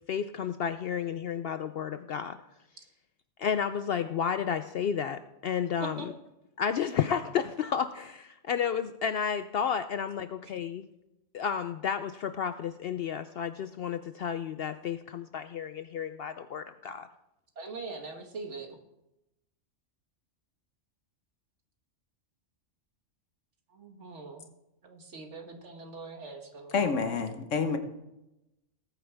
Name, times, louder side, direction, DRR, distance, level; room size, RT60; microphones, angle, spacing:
voice 1, 0.1-2.4 3.4-6.0 6.6-10.9 11.3-17.1, left 7 dB, 65° left, 0.7 m, -32 dB
voice 2, 17.6-18.7 23.7-24.4 24.8-26.9, right 3 dB, 70° right, 1.9 m, -42 dB
voice 3, 26.7-27.8, left 5 dB, 85° left, 1.4 m, -28 dB
19.0 x 9.2 x 3.4 m
omnidirectional pair, 1.3 m